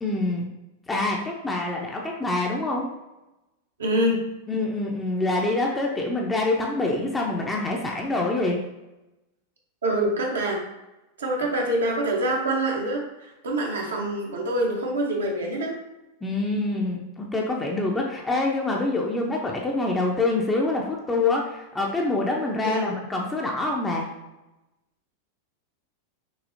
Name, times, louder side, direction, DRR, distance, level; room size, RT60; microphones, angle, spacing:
voice 1, 0.0-0.5 0.9-2.9 4.5-8.6 16.2-24.1, left 2 dB, 10° left, -1 dB, 0.6 m, -26 dB
voice 2, 3.8-4.2 9.8-10.6 11.2-15.8 22.6-22.9, right 1 dB, 65° right, -1 dB, 1.0 m, -25 dB
6.1 x 2.7 x 2.7 m, 0.99 s
figure-of-eight pair, 90°, 0 cm